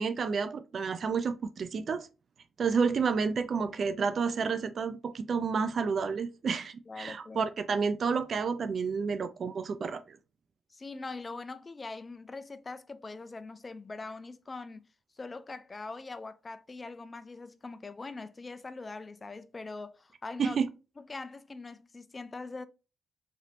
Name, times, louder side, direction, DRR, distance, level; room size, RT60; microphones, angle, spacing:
voice 1, 0.0-2.1 2.6-10.2 20.4-20.7, right 5 dB, 55° right, 0.3 m, -30 dB
voice 2, 6.9-7.5 10.7-14.8 15.2-20.6 21.0-22.7, left 3 dB, 30° left, 0.4 m, -42 dB
3.2 x 2.8 x 2.5 m
supercardioid pair, 55°, 0 cm